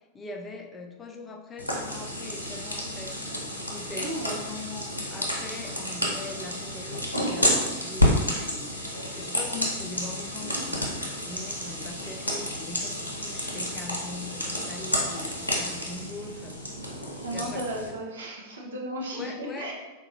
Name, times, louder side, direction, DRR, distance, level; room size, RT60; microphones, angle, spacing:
voice 1, 0.1-3.2 3.7-16.6 17.3-17.6 19.1-19.7, left 3 dB, 20° left, 2 dB, 0.4 m, -41 dB
sound 1, 1.6-17.9, left 1 dB, 85° left, 0.6 m, -30 dB
voice 2, 3.9-4.3 10.4-10.8 17.2-19.7, right 1 dB, 70° right, -2 dB, 0.6 m, -35 dB
3.9 x 2.3 x 2.5 m, 1.1 s
figure-of-eight pair, 90°, 0 cm